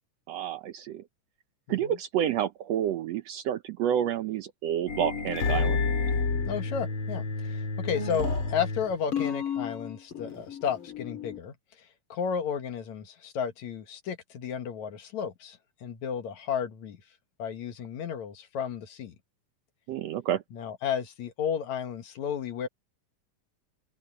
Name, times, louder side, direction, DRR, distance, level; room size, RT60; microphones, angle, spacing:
voice 1, 0.3-1.0 1.7-5.8 19.9-20.4, right 10 dB, 70° right, 1.7 m, -29 dB
voice 2, 1.7-2.0 6.5-11.5 12.1-17.0 17.4-19.2 20.5-22.7, left 7 dB, 65° left, 2.7 m, -33 dB
sound 1, 4.9-11.4, left 4 dB, 40° left, 4.0 m, -30 dB
omnidirectional pair, 3.5 m